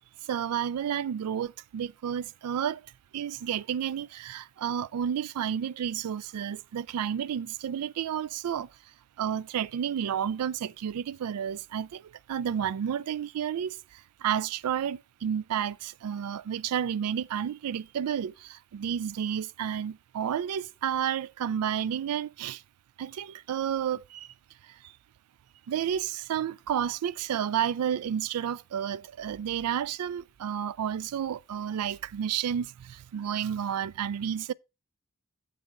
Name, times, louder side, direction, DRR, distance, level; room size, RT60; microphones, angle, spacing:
voice 1, 0.2-2.9 3.1-8.7 9.2-22.6 23.0-24.3 24.6-24.9 25.7-34.5, right 9 dB, 90° right, 0.3 m, -31 dB
8.2 x 7.6 x 3.6 m
head